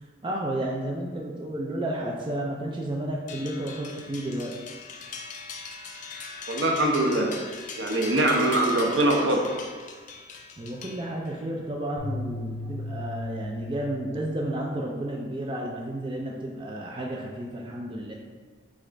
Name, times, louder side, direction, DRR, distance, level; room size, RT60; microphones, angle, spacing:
voice 1, 0.2-4.5 10.6-18.1, right 1 dB, 25° right, -2 dB, 0.4 m, -32 dB
sound 1, 3.3-11.4, left 4 dB, 40° left, 0.4 m, -40 dB
voice 2, 6.5-7.4 7.8-9.5, right 1 dB, 65° right, 1 dB, 0.7 m, -23 dB
sound 2, 12.0-14.5, left 1 dB, 80° left, 1.1 m, -36 dB
4.8 x 2.4 x 4.4 m, 1.5 s
head